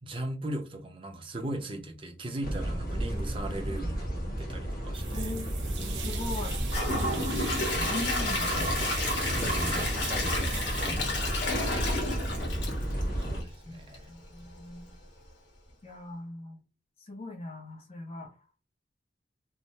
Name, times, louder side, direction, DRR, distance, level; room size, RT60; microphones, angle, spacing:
voice 1, 0.0-4.1 4.4-5.3 6.9-7.3 9.3-10.4 10.8-11.1 13.2-14.0, right 1 dB, 30° right, 0.5 m, -38 dB
sound 1, 2.4-13.4, right 1 dB, 50° left, 1.2 m, -33 dB
sound 2, 4.9-10.9, right 7 dB, 75° right, 0.7 m, -40 dB
voice 2, 5.1-5.5 5.8-6.6 7.1-8.8 9.7-9.8 10.5-10.6 11.0-11.3 13.7-13.8 14.1-14.9 15.8-16.6 17.0-18.3, left 2 dB, 35° left, 0.6 m, -40 dB
Gurgling / Toilet flush / Trickle dribble, 6.5-13.5 13.9-14.0 14.5-14.6, left 2 dB, 80° left, 1.0 m, -31 dB
3.2 x 2.0 x 2.7 m
head